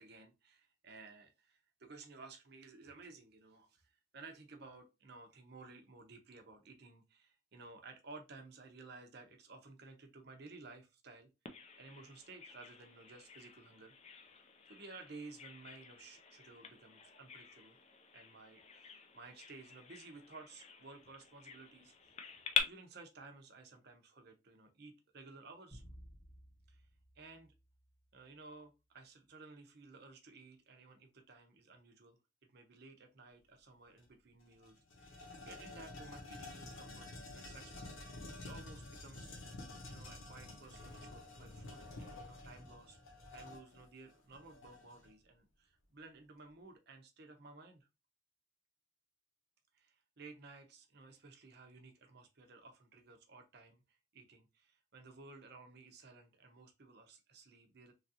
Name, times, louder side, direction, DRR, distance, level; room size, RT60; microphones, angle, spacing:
voice 1, 0.0-11.3 11.8-13.9 14.7-17.8 18.1-22.3 22.6-25.8 26.7-26.9 27.1-27.5 28.1-39.3 39.9-47.9 49.7-57.9, right 3 dB, 50° right, 4 dB, 0.6 m, -56 dB
Bird vocalization bird call bird song, 11.5-22.6, left 6 dB, 30° left, 0.4 m, -45 dB
sound 1, 25.7-28.3, equal, 10° right, 1.0 m, -58 dB
sound 2, 34.0-34.1 34.4-45.1, left 2 dB, 80° left, 0.9 m, -50 dB
3.1 x 2.5 x 2.7 m, 0.25 s
head